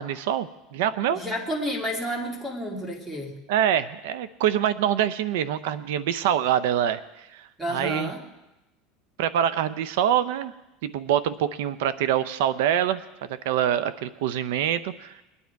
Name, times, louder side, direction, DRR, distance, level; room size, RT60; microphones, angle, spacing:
voice 1, 0.0-1.2 3.5-8.1 9.2-10.5 10.8-13.0 13.4-15.2, right 10 dB, 80° right, 14 dB, 0.6 m, -25 dB
voice 2, 1.1-3.4 7.6-8.2, equal, 10° right, 1 dB, 2.3 m, -30 dB
21.5 x 9.8 x 4.6 m, 0.99 s
supercardioid pair, 150°, 0 cm